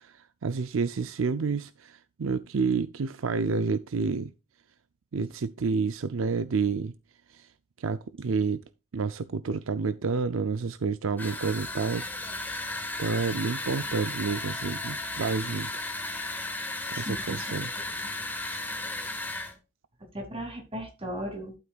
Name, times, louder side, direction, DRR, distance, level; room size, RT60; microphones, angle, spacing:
voice 1, 0.0-4.3 5.1-6.9 7.3-7.5 7.8-8.6 8.9-12.6 13.0-15.9 16.9-17.7, right 4 dB, 70° right, 0.5 m, -29 dB
sound 1, 11.2-19.5, left 2 dB, 10° left, 1.6 m, -35 dB
voice 2, 16.9-18.1 20.0-21.6, equal, 30° right, 3.0 m, -38 dB
12.0 x 8.1 x 2.4 m
head